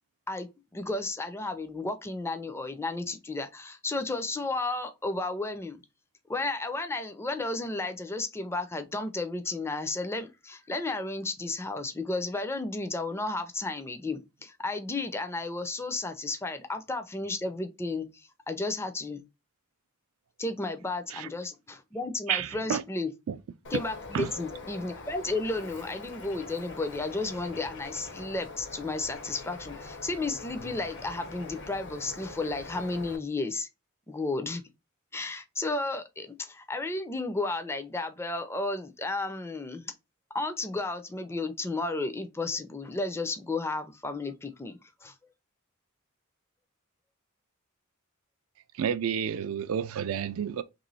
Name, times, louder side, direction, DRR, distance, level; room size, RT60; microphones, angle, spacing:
voice 1, 0.3-5.8 6.3-19.2 20.4-23.1 23.7-33.7 34.1-34.6 35.1-39.9 40.3-45.1, left 2 dB, 10° left, 0.4 m, -33 dB
voice 2, 22.3-22.8 23.3-23.4 24.1-24.3 48.8-50.6, right 8 dB, 70° right, 0.4 m, -30 dB
Bird, 23.6-33.2, left 3 dB, 55° left, 0.8 m, -43 dB
3.0 x 3.0 x 3.9 m
head